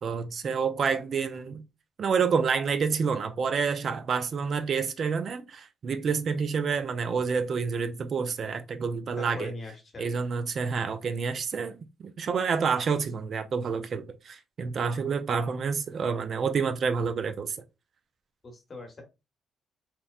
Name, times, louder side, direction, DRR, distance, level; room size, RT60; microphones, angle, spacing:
voice 1, 0.0-1.6 2.0-9.5 10.0-17.6, right 5 dB, 55° right, 0.3 m, -28 dB
voice 2, 9.2-10.1 18.4-19.0, left 2 dB, 35° left, 1.0 m, -41 dB
2.9 x 2.0 x 2.3 m
cardioid pair, 90°, 0 cm